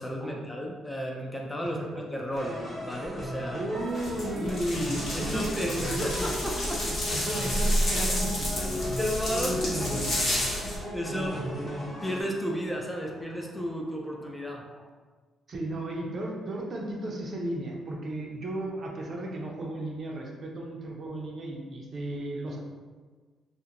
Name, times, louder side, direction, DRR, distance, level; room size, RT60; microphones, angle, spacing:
voice 1, 0.0-3.6 4.3-6.9 7.1-7.3 9.0-10.0 10.4-11.5 12.0-14.9, equal, 10° left, 0 dB, 0.3 m, -33 dB
voice 2, 1.6-2.2 3.5-6.3 6.9-8.9 9.5-10.5 11.1-11.9 15.5-22.6, right 1 dB, 50° right, -1 dB, 0.5 m, -35 dB
sound 1, 2.3-12.2, equal, 30° left, 0.9 m, -36 dB
sound 2, 4.0-10.8, left 1 dB, 70° left, 1.0 m, -30 dB
2.4 x 2.1 x 2.8 m, 1.4 s
cardioid pair, 90°, 0 cm